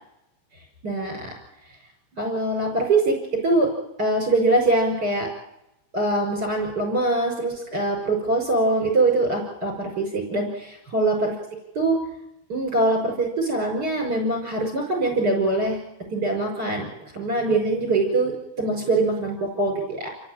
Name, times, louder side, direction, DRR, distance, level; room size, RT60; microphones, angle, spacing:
voice 1, 0.8-1.3 2.1-3.7 4.0-5.3 5.9-11.3 11.7-12.0 12.5-15.8 16.1-16.9 17.1-20.1, right 2 dB, 20° right, 2 dB, 5.9 m, -23 dB
29.0 x 16.0 x 9.1 m, 0.88 s
omnidirectional pair, 5.9 m